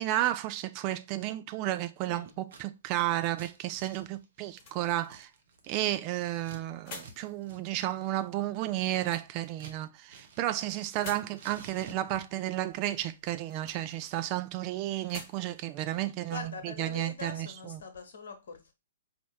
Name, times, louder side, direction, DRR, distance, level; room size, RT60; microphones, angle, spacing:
voice 1, 0.0-5.3 5.7-17.8, right 14 dB, 35° right, 0.3 m, -32 dB
voice 2, 2.0-2.4 16.3-18.7, left 4 dB, 60° left, 1.0 m, -43 dB
Scissors, 2.3-2.6 2.9-6.6 6.9-7.2 7.4-7.6 7.9-9.8 10.1-11.0 11.3-12.5, right 5 dB, 55° right, 0.9 m, -51 dB
sound 1, 4.3-17.2, left 3 dB, 35° left, 1.1 m, -53 dB
4.3 x 2.7 x 3.1 m
figure-of-eight pair, 120°, 0 cm